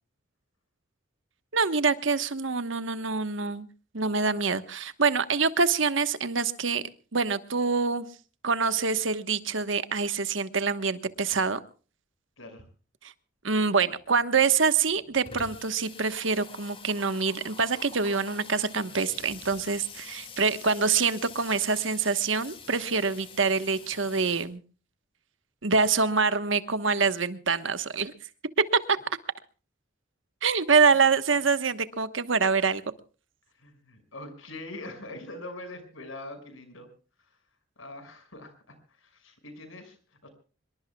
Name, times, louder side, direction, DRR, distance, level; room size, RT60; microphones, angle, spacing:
voice 1, 1.5-3.7 3.9-6.8 7.1-8.1 8.4-11.6 13.4-24.6 25.6-28.1 28.7-29.0 30.4-32.8, right 5 dB, 70° right, 11 dB, 1.2 m, -25 dB
voice 2, 12.4-12.7 33.5-36.9 37.2-37.4 37.8-40.3, left 2 dB, 80° left, 8 dB, 5.9 m, -43 dB
Water tap faucet / Sink (filling or washing), 13.8-13.9 14.2-14.3 14.6-24.5, left 5 dB, 25° left, 2.2 m, -46 dB
25.5 x 22.5 x 2.3 m, 0.37 s
head